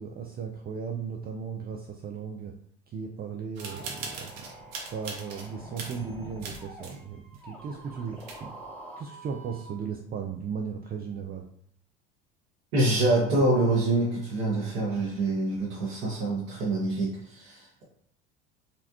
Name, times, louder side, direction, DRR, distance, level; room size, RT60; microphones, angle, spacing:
voice 1, 0.0-2.6 2.9-4.5 4.9-8.5 9.0-11.5, right 6 dB, 30° right, 2 dB, 0.4 m, -36 dB
sound 1, 3.6-9.7, right 1 dB, 5° left, 1.0 m, -46 dB
sound 2, 3.6-5.5 5.8-7.0 7.3-7.4 7.9-8.0 8.2-8.6, right 4 dB, 60° right, 1.0 m, -40 dB
voice 2, 12.7-17.8, right 2 dB, 75° right, -7 dB, 1.2 m, -26 dB
4.2 x 2.2 x 2.9 m, 0.71 s
hypercardioid pair, 75°, 30 cm